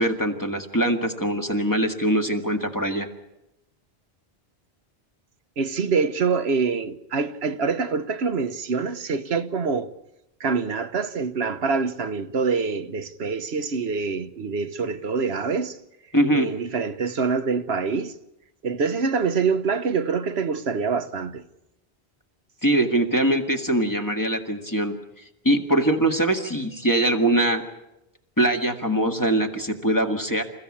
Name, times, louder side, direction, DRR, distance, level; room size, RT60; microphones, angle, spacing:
voice 1, 0.0-3.1 16.1-16.5 22.6-25.0 25.5-27.6 28.4-30.4, right 1 dB, 20° left, 1.8 m, -22 dB
voice 2, 5.6-9.9 10.4-15.8 16.3-18.1 18.6-21.4, right 5 dB, 80° right, 1.3 m, -25 dB
28.5 x 15.0 x 8.6 m
omnidirectional pair, 1.1 m